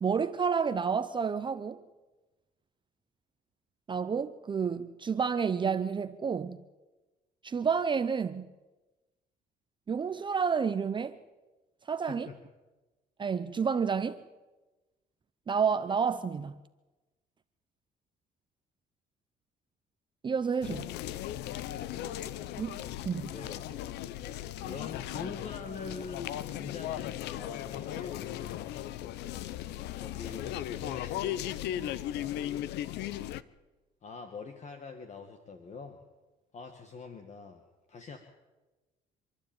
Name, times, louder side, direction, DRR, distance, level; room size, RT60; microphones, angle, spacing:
voice 1, 0.0-1.8 3.9-6.6 7.4-8.5 9.9-11.2 11.9-12.3 13.2-14.2 15.5-16.5 20.2-20.9 22.6-23.3, right 6 dB, 30° right, 0.7 m, -30 dB
voice 2, 12.1-12.4 23.3-23.7 24.6-28.6 30.0-32.4 34.0-36.0 36.5-37.6 37.9-38.2, left 4 dB, 45° left, 1.9 m, -44 dB
sound 1, 20.6-33.4, left 12 dB, 80° left, 0.8 m, -37 dB
26.5 x 12.0 x 9.0 m
cardioid pair, 110°, 17 cm